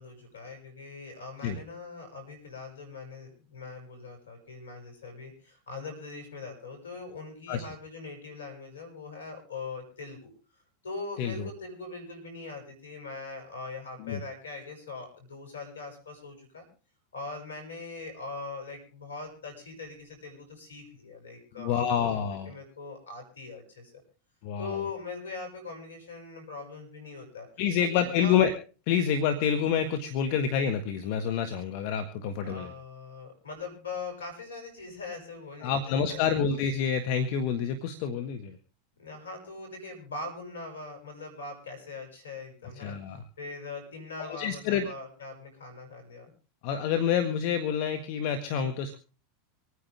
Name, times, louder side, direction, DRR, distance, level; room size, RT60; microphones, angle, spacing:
voice 1, 0.0-16.7 17.1-22.1 22.5-24.0 24.6-27.5 27.8-28.4 32.4-36.6 39.0-46.3, left 3 dB, 85° left, 6 dB, 7.2 m, -41 dB
voice 2, 11.2-11.5 14.0-14.2 21.6-22.5 24.4-24.8 27.6-28.5 28.9-32.7 35.6-38.6 42.8-43.2 44.2-44.9 46.6-49.0, left 7 dB, 60° left, 8 dB, 1.8 m, -28 dB
25.5 x 9.8 x 3.5 m, 0.37 s
hypercardioid pair, 95°, 0 cm